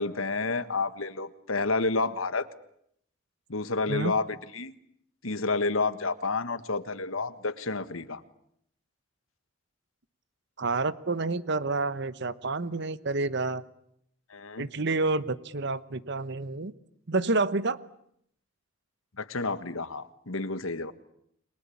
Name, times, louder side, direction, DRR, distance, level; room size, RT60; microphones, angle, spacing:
voice 1, 0.0-2.5 3.5-4.7 5.2-8.2 14.3-14.7 19.2-20.9, left 3 dB, 85° left, 12 dB, 1.5 m, -30 dB
voice 2, 10.6-13.6 14.6-16.7 17.1-17.8, right 3 dB, 55° right, 15 dB, 1.1 m, -29 dB
30.0 x 23.0 x 8.6 m, 0.73 s
head